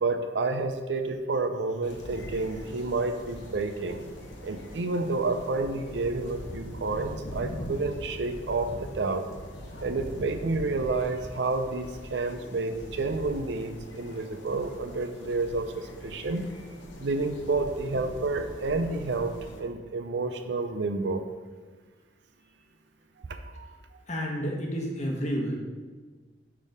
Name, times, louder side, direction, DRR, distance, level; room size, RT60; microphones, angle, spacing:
voice 1, 0.0-4.0 4.4-9.2 9.8-16.5 17.0-19.3 19.6-21.2 23.3-23.7, right 3 dB, 65° right, 8 dB, 0.5 m, -30 dB
sound 1, 1.8-19.6, equal, 75° left, 1.0 m, -42 dB
voice 2, 24.1-25.6, equal, 40° left, 0 dB, 1.1 m, -31 dB
6.5 x 3.6 x 4.9 m, 1.4 s
head